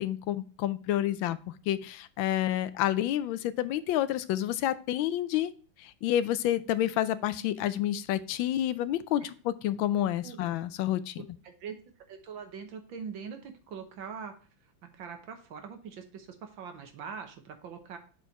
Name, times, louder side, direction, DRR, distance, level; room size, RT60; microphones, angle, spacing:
voice 1, 0.0-5.5 5.8-11.2, left 12 dB, 85° left, 14 dB, 1.4 m, -29 dB
voice 2, 11.2-11.8 12.1-14.4 14.9-18.0, right 6 dB, 80° right, 6 dB, 1.8 m, -42 dB
6.7 x 4.3 x 4.7 m, 0.39 s
omnidirectional pair, 2.1 m